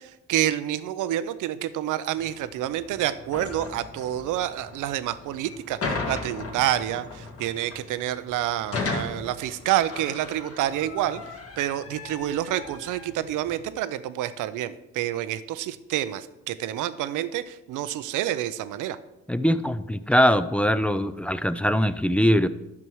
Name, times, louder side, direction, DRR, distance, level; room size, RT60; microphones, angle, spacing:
voice 1, 0.0-19.0, right 12 dB, 85° right, 14 dB, 0.6 m, -28 dB
sound 1, 2.2-13.6, left 3 dB, 50° left, 1.7 m, -37 dB
voice 2, 19.3-22.5, equal, 5° left, 12 dB, 0.4 m, -22 dB
11.0 x 6.2 x 4.6 m, 1.0 s
cardioid pair, 90°, 30 cm